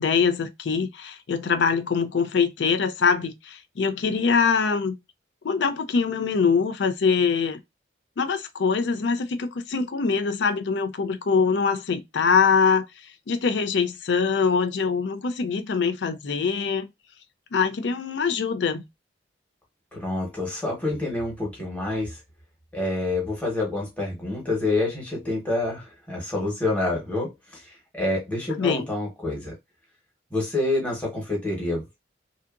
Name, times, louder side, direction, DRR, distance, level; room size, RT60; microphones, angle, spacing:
voice 1, 0.0-4.9 5.4-7.6 8.2-12.9 13.3-16.9 17.5-18.8 28.6-28.9, left 5 dB, 80° left, 0.4 m, -23 dB
voice 2, 19.9-22.2 22.7-29.5 30.3-31.8, left 2 dB, 10° left, 1.0 m, -27 dB
2.8 x 2.4 x 2.3 m
head